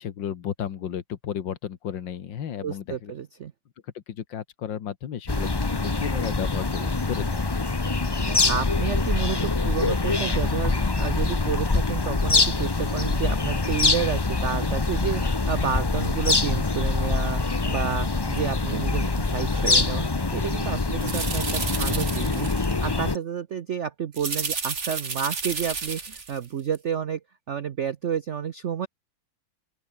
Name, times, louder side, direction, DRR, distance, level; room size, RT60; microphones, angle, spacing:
voice 1, 0.0-3.1 4.0-7.4, left 9 dB, 70° left, 2.0 m, -33 dB
voice 2, 2.6-3.5 8.3-17.4 17.7-28.9, right 8 dB, 65° right, 0.7 m, -31 dB
sound 1, 5.3-23.2, left 3 dB, 25° left, 0.5 m, -24 dB
sound 2, 18.7-18.8 19.5-19.9 20.8-22.8 24.1-26.5 26.8-26.9, right 4 dB, 35° right, 2.4 m, -32 dB
open air
omnidirectional pair, 2.1 m